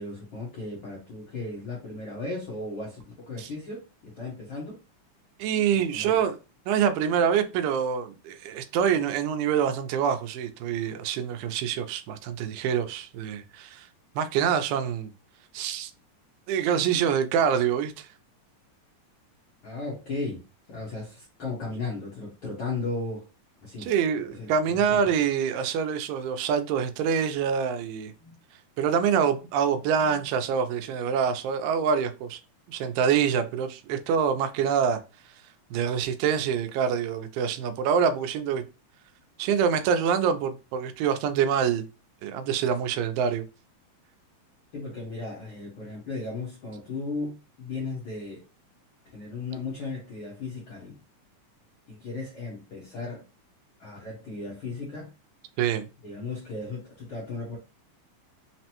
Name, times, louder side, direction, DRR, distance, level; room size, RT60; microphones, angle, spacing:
voice 1, 0.0-4.8 5.7-6.2 19.6-20.4 20.7-23.3 23.6-23.9 24.3-25.0 28.2-28.4 30.0-30.2 44.7-48.4 49.0-51.0 51.9-53.2 53.8-55.1 56.0-57.6, left 3 dB, 60° left, 1.3 m, -36 dB
voice 2, 5.4-6.4 6.7-13.9 14.2-15.1 15.5-15.9 16.5-18.1 23.8-28.1 28.8-32.4 32.7-35.0 35.7-38.6 39.4-41.9 42.2-43.4 55.6-55.9, right 7 dB, 85° right, 2.3 m, -25 dB
5.9 x 2.1 x 2.9 m
omnidirectional pair, 3.8 m